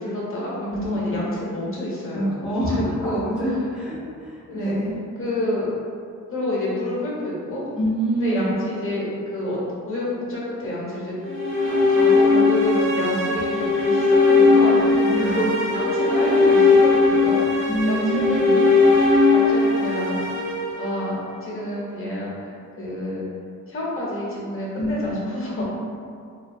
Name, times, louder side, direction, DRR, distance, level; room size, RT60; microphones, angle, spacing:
voice 1, 0.0-3.5 4.5-4.8 5.2-5.7 6.3-7.6 8.1-9.6 9.9-11.1 11.6-18.9 19.3-20.2 20.8-23.2 23.7-25.6, left 1 dB, 40° left, -6 dB, 0.7 m, -29 dB
voice 2, 0.7-1.2 2.1-4.9 7.8-8.6 15.0-15.5 17.7-18.6 24.8-25.2 25.5-25.6, equal, 5° right, -9 dB, 0.4 m, -26 dB
sound 1, 11.2-21.4, left 3 dB, 40° right, 0.7 m, -18 dB
2.6 x 2.3 x 2.5 m, 2.3 s
wide cardioid pair, 135°, 33 cm